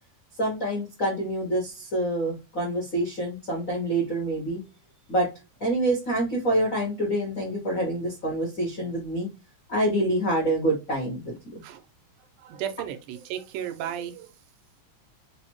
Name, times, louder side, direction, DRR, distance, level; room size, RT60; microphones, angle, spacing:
voice 1, 0.4-4.6 5.1-5.3 5.6-9.3 9.7-11.6, right 1 dB, 85° left, 0.7 m, -26 dB
voice 2, 12.4-14.3, right 10 dB, 85° right, 2.2 m, -34 dB
5.0 x 2.1 x 3.0 m
omnidirectional pair, 3.5 m